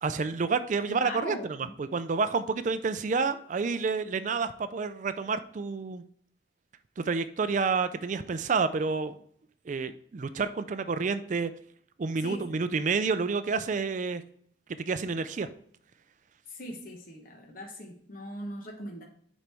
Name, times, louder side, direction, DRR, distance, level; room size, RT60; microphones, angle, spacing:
voice 1, 0.0-1.4 1.8-6.0 7.0-9.2 9.7-11.5 12.0-14.2 14.8-15.5, right 4 dB, 40° right, 12 dB, 0.4 m, -29 dB
voice 2, 0.9-1.7 12.2-12.6 16.5-19.0, equal, 45° left, 1 dB, 1.0 m, -40 dB
7.2 x 5.2 x 3.4 m, 0.62 s
head